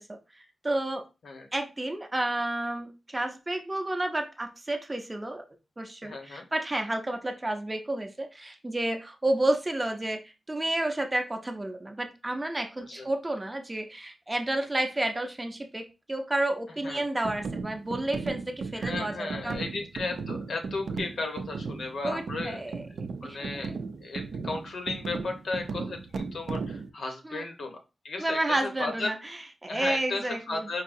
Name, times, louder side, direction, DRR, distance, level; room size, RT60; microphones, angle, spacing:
voice 1, 0.1-1.1 1.5-5.4 5.8-19.6 22.0-22.8 23.2-23.4 27.2-27.4 28.2-30.6, right 1 dB, 15° right, 5 dB, 0.5 m, -31 dB
voice 2, 6.0-6.5 12.9-13.1 16.8-17.0 18.8-22.6 23.2-23.7 24.0-27.8 28.0-29.1 29.7-30.8, left 3 dB, 75° left, 4 dB, 0.9 m, -35 dB
sound 1, 17.2-26.9, right 4 dB, 75° right, 0.4 m, -36 dB
4.7 x 2.7 x 2.5 m, 0.28 s
wide cardioid pair, 165°, 0 cm